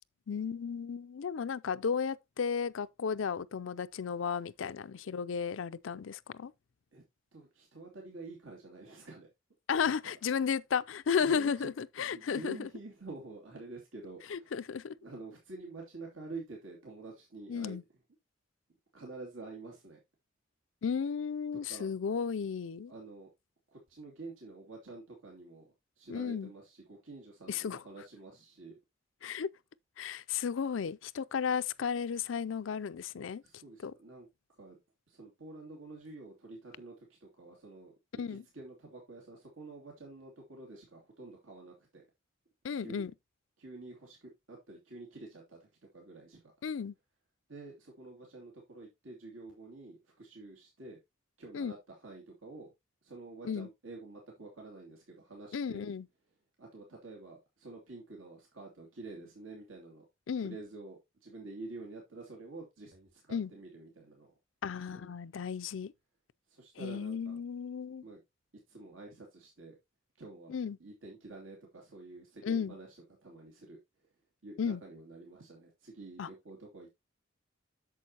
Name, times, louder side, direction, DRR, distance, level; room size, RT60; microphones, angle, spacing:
voice 1, 0.3-6.5 9.7-12.7 14.3-14.9 17.5-17.8 20.8-22.9 26.1-26.5 27.5-27.8 29.2-29.5 30.0-33.4 33.8-33.9 38.2-38.4 42.6-43.1 46.6-46.9 51.5-51.7 53.4-53.7 55.5-56.0 60.3-60.6 63.3-63.5 64.6-65.9 66.8-68.0 70.5-70.8 72.4-72.8 74.6-74.8 76.2-76.3, left 6 dB, 75° left, 0.4 m, -34 dB
voice 2, 7.3-9.3 9.8-10.2 11.2-11.7 12.1-14.7 15.0-17.8 18.9-20.0 21.5-21.9 22.9-23.3 23.7-25.7 26.0-28.7 33.4-34.3 34.5-34.8 35.1-37.9 38.3-42.1 42.7-43.0 43.6-46.4 47.5-51.0 51.4-52.7 53.0-55.9 56.6-60.0 60.4-64.3 64.9-65.1 66.5-67.4 68.0-68.2 68.7-69.8 70.2-73.8 74.4-76.9, right 3 dB, 90° right, 2.5 m, -48 dB
8.5 x 6.9 x 2.9 m
head